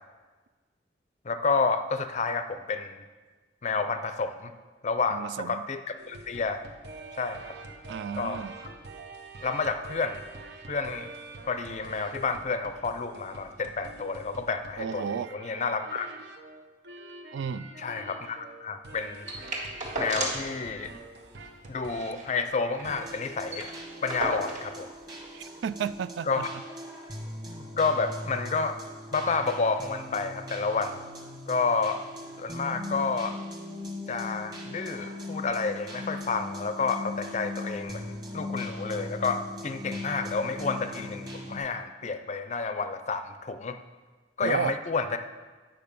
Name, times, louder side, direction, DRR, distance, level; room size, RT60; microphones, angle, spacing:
voice 1, 1.2-3.0 3.6-4.5 4.8-6.6 7.2-7.6 8.2-8.5 9.4-10.2 10.7-11.1 11.5-15.0 15.3-16.1 17.8-19.3 20.0-20.9 21.7-23.7 24.0-24.9 26.3-26.5 27.5-28.8 29.1-31.0 31.5-32.0 32.4-33.4 34.1-43.8 44.4-45.2, left 4 dB, 40° left, 9 dB, 0.5 m, -30 dB
voice 2, 5.1-5.6 7.9-8.5 14.8-15.3 17.3-17.7 25.3-26.5 44.4-44.8, right 7 dB, 85° right, 15 dB, 0.3 m, -32 dB
sound 1, 6.0-23.5 23.9-24.2, right 3 dB, 70° right, 0.8 m, -46 dB
sound 2, 19.3-20.6 20.9-21.0 21.2-21.4 21.8-22.9 23.2-23.3 23.5-24.7 25.6-25.7, right 1 dB, 45° right, 1.7 m, -34 dB
sound 3, 22.8-41.6, left 2 dB, 20° right, 1.3 m, -39 dB
8.7 x 5.2 x 5.3 m, 1.3 s
head